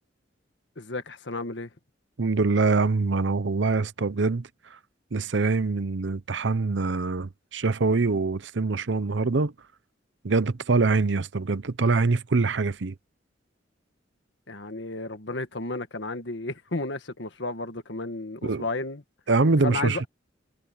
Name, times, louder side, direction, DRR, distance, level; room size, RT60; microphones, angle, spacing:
voice 1, 0.8-1.7 14.5-19.0 19.6-20.1, left 2 dB, 65° left, 1.8 m, -33 dB
voice 2, 2.2-4.5 5.1-9.5 10.2-12.9 18.4-18.6 19.3-20.0, right 3 dB, 65° right, 0.7 m, -24 dB
head